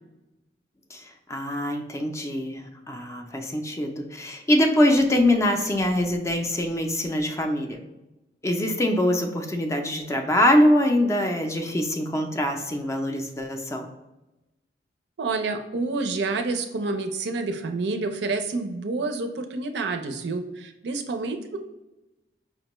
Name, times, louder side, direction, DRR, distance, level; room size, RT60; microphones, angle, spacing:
voice 1, 0.9-7.8 8.4-13.9, left 1 dB, 15° left, 4 dB, 0.4 m, -23 dB
voice 2, 15.2-21.6, right 3 dB, 70° right, 6 dB, 0.4 m, -28 dB
5.1 x 2.2 x 2.9 m, 0.99 s
head